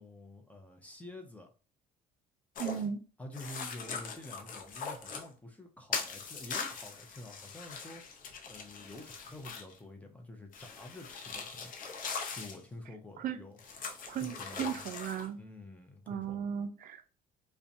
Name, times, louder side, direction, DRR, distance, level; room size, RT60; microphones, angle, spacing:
voice 1, 0.0-1.5 3.2-11.7 12.3-13.6 14.1-14.9 15.4-16.4, left 1 dB, 10° left, 0.6 m, -48 dB
sound 1, 2.6-2.8 3.3-5.3 5.9-9.8 10.5-12.6 13.6-15.3, left 5 dB, 55° left, 0.6 m, -41 dB
voice 2, 2.6-3.0 13.2-13.4 14.1-15.4 16.1-17.0, right 8 dB, 55° right, 0.4 m, -36 dB
2.6 x 2.2 x 2.6 m
cardioid pair, 110°, 17 cm